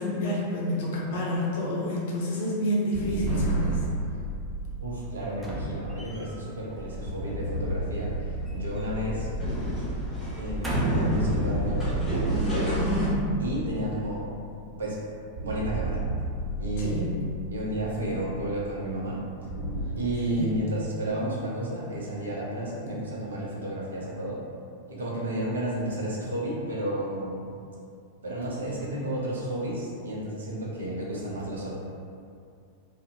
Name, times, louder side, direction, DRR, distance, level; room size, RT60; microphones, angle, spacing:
voice 1, 0.0-3.8 12.7-13.3 16.8-17.1 20.3-20.5, left 1 dB, 50° left, -4 dB, 0.6 m, -29 dB
sound 1, 2.9-6.5 7.1-10.9 11.2-14.8 15.4-19.8, right 1 dB, 45° right, 1.3 m, -33 dB
voice 2, 4.8-9.3 10.4-11.9 13.4-14.3 14.8-15.0 15.4-16.0 16.6-19.2 20.0-24.4 24.9-27.5 28.2-31.8, right 1 dB, 70° right, -5 dB, 0.5 m, -32 dB
sound 2, 5.4-6.5 8.1-9.2 9.5-9.7 10.3-11.2 11.9-12.0, right 1 dB, 10° right, 0.4 m, -35 dB
sound 3, 6.7-13.1, right 1 dB, 15° left, 1.0 m, -30 dB
2.5 x 2.1 x 2.6 m, 2.4 s
figure-of-eight pair, 90°, 0 cm